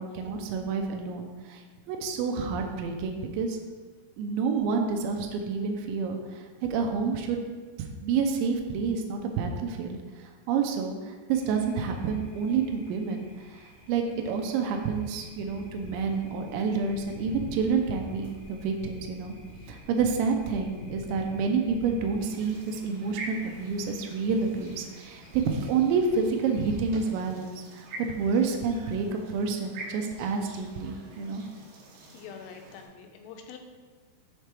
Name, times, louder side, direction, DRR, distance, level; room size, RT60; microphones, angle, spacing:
voice 1, 0.0-1.6 1.9-3.6 4.2-6.5 6.7-7.4 8.0-10.0 10.5-13.2 13.9-19.3 19.7-31.4, right 5 dB, 90° right, 3 dB, 2.6 m, -28 dB
Thunder, 11.3-27.0, left 1 dB, 60° left, 1.8 m, -48 dB
sound 1, 22.2-32.9, right 2 dB, 70° right, 2.6 m, -46 dB
voice 2, 32.1-33.6, left 6 dB, 85° left, 4 dB, 3.3 m, -45 dB
7.4 x 3.3 x 4.5 m, 1.5 s
omnidirectional pair, 5.8 m